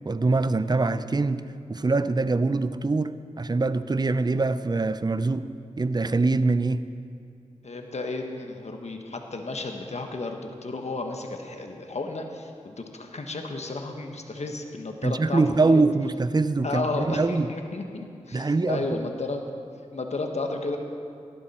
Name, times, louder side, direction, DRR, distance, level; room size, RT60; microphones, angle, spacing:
voice 1, 0.0-1.4 1.7-5.5 5.8-6.9 15.0-17.5 18.3-19.1, right 3 dB, 30° right, 13 dB, 0.6 m, -24 dB
voice 2, 7.6-15.8 16.6-19.4 19.9-20.8, left 3 dB, 60° left, 4 dB, 1.4 m, -33 dB
16.0 x 12.0 x 4.4 m, 2.5 s
cardioid pair, 40°, 13 cm